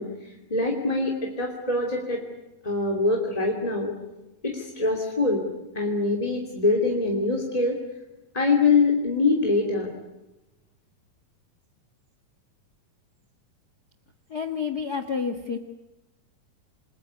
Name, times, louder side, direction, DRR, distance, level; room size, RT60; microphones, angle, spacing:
voice 1, 0.0-2.2 2.6-3.9 4.4-5.4 5.7-7.8 8.3-9.9, left 3 dB, 10° left, 0 dB, 2.4 m, -24 dB
voice 2, 14.3-15.6, left 6 dB, 55° left, 8 dB, 1.1 m, -29 dB
29.0 x 21.5 x 9.6 m, 0.97 s
omnidirectional pair, 4.4 m